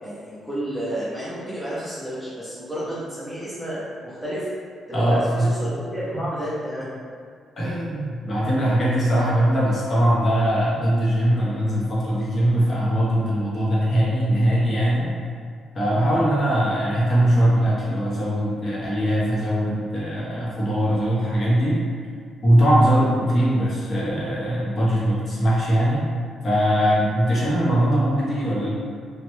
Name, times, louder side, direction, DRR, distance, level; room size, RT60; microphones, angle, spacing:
voice 1, 0.0-4.5 4.9-6.9, equal, ahead, -10 dB, 0.5 m, -31 dB
voice 2, 4.9-5.5 6.1-6.2 7.6-15.1 15.7-21.8 22.4-26.0 26.4-28.7, equal, 30° left, -7 dB, 0.7 m, -21 dB
3.0 x 2.1 x 3.0 m, 2.1 s
cardioid pair, 160°, 0 cm